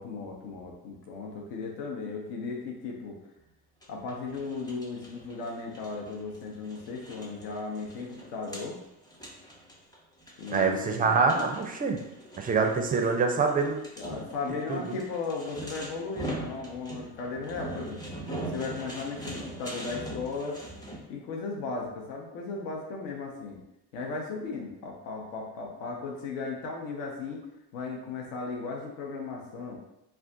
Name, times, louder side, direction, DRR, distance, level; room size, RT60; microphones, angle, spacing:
voice 1, 0.0-3.2 3.9-8.8 10.4-11.1 14.0-18.0 18.4-20.6 21.1-23.6 23.9-27.4 27.7-29.8, left 4 dB, 70° left, 0 dB, 0.8 m, -36 dB
sound 1, 3.8-21.0, right 1 dB, 10° left, 0.7 m, -42 dB
voice 2, 10.5-12.0 12.4-13.8 14.7-14.9, right 4 dB, 20° right, 3 dB, 0.4 m, -25 dB
2.4 x 2.3 x 3.7 m, 0.89 s
supercardioid pair, 85°, 44 cm